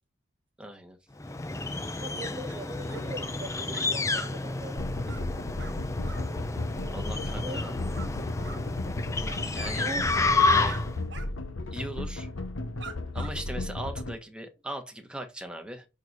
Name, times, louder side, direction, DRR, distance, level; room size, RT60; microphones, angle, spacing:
voice 1, 0.6-1.0 6.9-7.7 9.5-9.9 10.2-10.8 11.7-12.3 13.1-15.9, right 1 dB, 5° right, 1.2 m, -39 dB
sound 1, 1.2-11.0, left 3 dB, 15° left, 0.5 m, -30 dB
voice 2, 2.0-4.9 7.4-7.7 9.8-10.3, right 2 dB, 25° right, 0.7 m, -40 dB
sound 2, 2.5-2.6 2.9-3.3 3.7-4.3 4.6-4.8 5.0-5.2 5.6-5.8 6.0-6.2 7.6-8.1 8.4-8.6 9.2-9.8 10.1-10.3 10.6-10.8 11.1-11.3 11.6-11.7 12.4-12.5 12.8-13.3, right 5 dB, 60° right, 1.3 m, -45 dB
sound 3, 4.8-14.2, left 2 dB, 75° left, 0.9 m, -34 dB
6.4 x 4.1 x 4.7 m
head